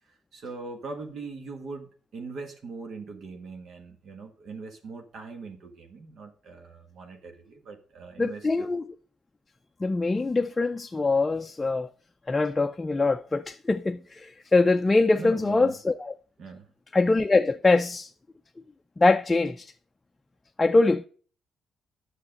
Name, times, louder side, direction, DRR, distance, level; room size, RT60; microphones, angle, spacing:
voice 1, 0.3-8.7 15.2-15.7 16.4-16.7, right 4 dB, 65° right, 1.5 m, -41 dB
voice 2, 8.2-8.9 9.8-11.9 12.3-16.1 16.9-18.1 19.0-19.7 20.6-21.0, left 3 dB, 20° left, 0.4 m, -23 dB
8.6 x 6.5 x 5.2 m
cardioid pair, 90°, 0 cm